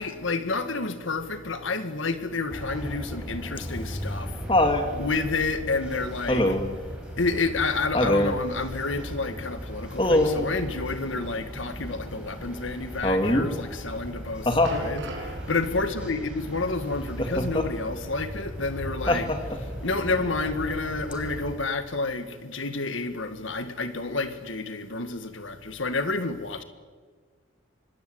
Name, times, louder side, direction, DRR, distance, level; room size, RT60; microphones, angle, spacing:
voice 1, 0.0-6.9 7.2-26.6, left 3 dB, 75° left, 1.8 m, -30 dB
sound 1, 2.5-21.6, equal, 5° right, 5.0 m, -38 dB
Laughter, 3.6-4.9 6.3-6.8 7.9-8.4 10.0-10.5 13.0-13.5 14.5-14.8 17.2-17.7 19.1-19.7 21.1-21.2, left 1 dB, 25° left, 2.2 m, -23 dB
sound 2, 14.2-18.9 19.2-19.4 20.1-20.2, right 1 dB, 65° right, 6.0 m, -41 dB
25.5 x 21.0 x 8.1 m
head